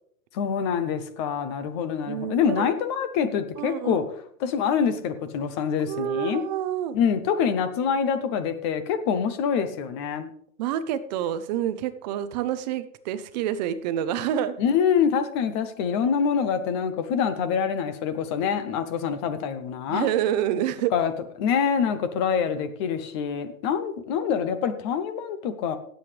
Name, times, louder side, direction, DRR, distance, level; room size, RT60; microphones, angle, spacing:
voice 1, 0.3-4.0 4.4-6.4 6.9-10.3 14.6-20.1 20.9-21.1 21.4-25.8, left 7 dB, 20° left, 11 dB, 0.4 m, -25 dB
voice 2, 2.1-2.7 3.6-4.1 5.9-7.0 10.6-14.6 19.9-20.9, right 10 dB, 30° right, 12 dB, 0.6 m, -28 dB
17.0 x 7.8 x 3.3 m, 0.64 s
supercardioid pair, 170°, 43 cm